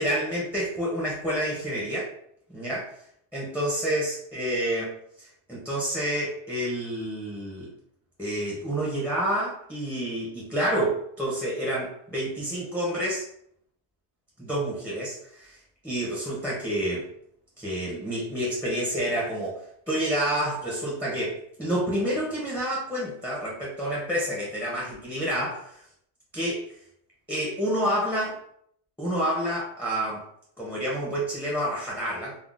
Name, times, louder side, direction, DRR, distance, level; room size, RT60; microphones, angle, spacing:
voice 1, 0.0-2.1 2.5-2.9 3.3-7.7 8.2-13.2 14.4-15.6 15.8-17.1 17.6-25.8 26.3-26.7 27.3-28.4 29.0-30.2 30.6-32.4, equal, 5° left, -6 dB, 0.6 m, -29 dB
3.6 x 2.1 x 2.5 m, 0.67 s
omnidirectional pair, 1.2 m